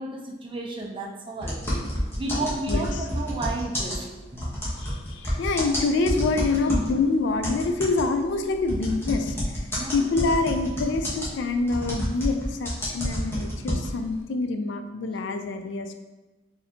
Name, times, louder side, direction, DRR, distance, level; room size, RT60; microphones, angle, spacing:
voice 1, 0.0-1.6 2.2-4.6 9.7-10.1, right 2 dB, 25° right, 0 dB, 0.5 m, -33 dB
sound 1, 1.4-7.0 7.4-14.1, equal, 10° left, 0.9 m, -29 dB
voice 2, 2.7-3.1 4.8-15.9, left 3 dB, 65° left, 6 dB, 0.3 m, -26 dB
4.1 x 2.7 x 2.7 m, 1.2 s
head